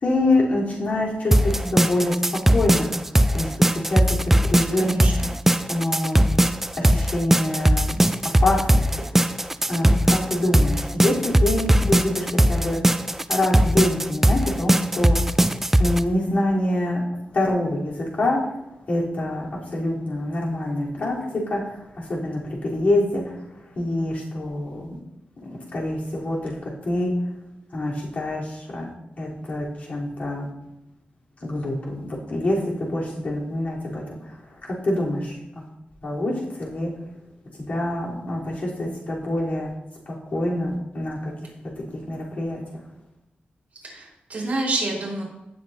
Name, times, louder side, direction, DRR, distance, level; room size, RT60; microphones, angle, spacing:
voice 1, 0.0-2.2 2.5-5.0 5.7-6.2 6.7-8.8 9.1-9.2 9.7-12.8 13.3-15.2 15.8-17.0 17.3-18.4 18.9-23.4 23.7-25.0 25.4-27.1 27.7-28.9 29.2-30.5 31.4-34.5 34.8-35.7 36.0-36.9 37.5-39.7 40.0-41.5 41.9-42.8, left 1 dB, 50° left, -5 dB, 3.4 m, -26 dB
sound 1, 1.3-16.0, right 1 dB, 10° right, 0.3 m, -19 dB
voice 2, 4.8-5.3 43.8-45.2, right 2 dB, 45° right, -3 dB, 4.2 m, -28 dB
17.0 x 7.6 x 2.7 m, 0.91 s
wide cardioid pair, 160°, 3 cm